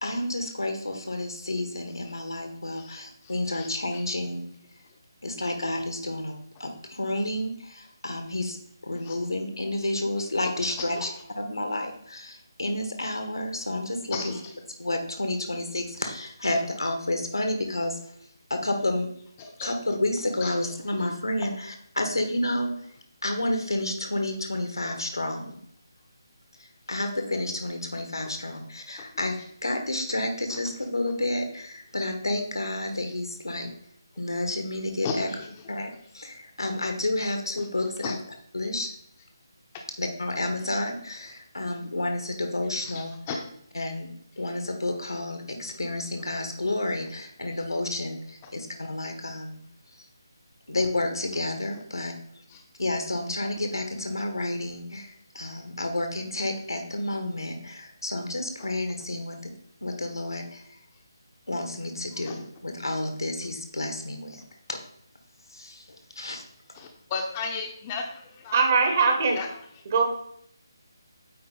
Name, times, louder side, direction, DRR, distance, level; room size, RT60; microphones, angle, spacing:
voice 1, 0.0-4.5 5.2-6.3 6.6-8.6 8.8-11.1 11.4-14.3 14.8-18.0 18.5-19.1 19.6-22.7 23.2-25.5 26.6-29.4 29.6-33.7 34.2-35.3 35.7-38.2 38.5-38.9 40.0-43.1 43.7-44.1 44.4-49.6 50.7-52.2 52.8-59.5 59.8-60.8 61.5-64.4 64.7-64.8 65.5-65.8 66.1-66.4, left 1 dB, 75° left, 5 dB, 1.4 m, -30 dB
voice 2, 2.8-4.0 9.1-9.2 10.6-11.1 14.1-14.4 19.4-19.7 20.4-20.5 30.5-30.6 35.0-35.5 38.0-38.1 42.8-42.9 43.3-43.4 52.5-52.6 62.2-62.4 66.7-68.7 69.3-69.5, left 5 dB, 20° left, 3 dB, 0.8 m, -35 dB
voice 3, 68.5-69.4 69.9-70.0, right 4 dB, 35° right, 4 dB, 1.2 m, -21 dB
8.6 x 4.2 x 3.9 m, 0.67 s
figure-of-eight pair, 150°, 2 cm